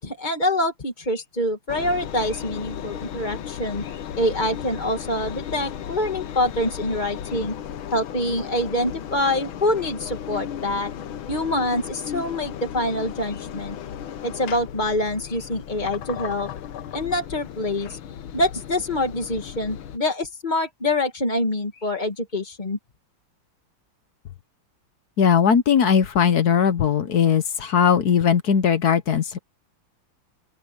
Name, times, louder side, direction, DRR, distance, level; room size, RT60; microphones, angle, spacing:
voice 1, 0.0-7.5 7.9-10.9 11.3-13.8 14.2-16.5 16.9-18.0 18.3-22.8, left 1 dB, 25° left, 1.8 m, -25 dB
Engine, 1.7-20.0, left 9 dB, 75° left, 1.8 m, -35 dB
voice 2, 25.2-29.4, left 7 dB, 55° left, 1.4 m, -19 dB
open air
omnidirectional pair, 2.3 m